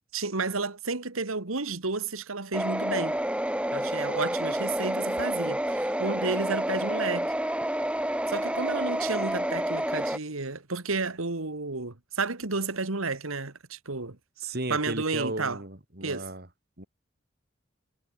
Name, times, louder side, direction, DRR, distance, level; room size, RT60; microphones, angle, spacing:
voice 1, 0.1-3.2 3.7-7.3 8.3-15.6 16.0-16.3, right 3 dB, 90° right, 2.0 m, -32 dB
sound 1, 2.5-10.2, right 1 dB, 5° right, 2.3 m, -29 dB
voice 2, 14.4-16.5 16.8-16.9, right 2 dB, 50° right, 3.5 m, -34 dB
head